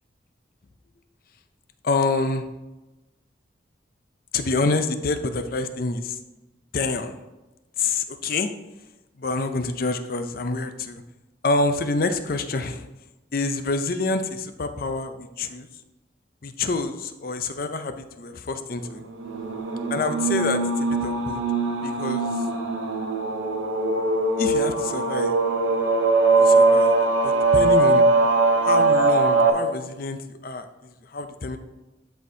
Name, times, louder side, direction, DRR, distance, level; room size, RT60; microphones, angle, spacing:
voice 1, 1.8-2.5 4.3-6.2 6.7-7.2 7.8-8.5 9.2-11.0 11.4-12.9 13.3-15.7 16.4-19.0 19.9-21.4 21.8-22.5 24.4-25.3 26.4-27.0 27.2-28.0 28.6-31.6, left 3 dB, 50° left, 9 dB, 0.5 m, -27 dB
sound 1, 19.2-29.5, right 3 dB, 90° right, 0.8 m, -21 dB
12.0 x 4.3 x 2.7 m, 1.1 s
head